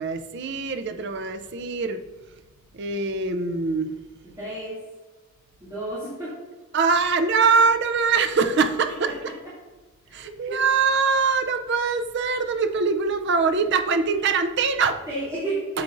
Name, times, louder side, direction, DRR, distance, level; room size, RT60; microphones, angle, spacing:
voice 1, 0.0-2.0 2.7-4.0 6.7-9.3 10.1-15.0 15.7-15.8, right 4 dB, 55° right, 9 dB, 0.5 m, -23 dB
voice 2, 4.4-4.8 5.6-6.3 10.1-10.6 15.1-15.8, right 2 dB, 15° right, -12 dB, 2.4 m, -31 dB
8.5 x 7.3 x 2.6 m, 1.2 s
head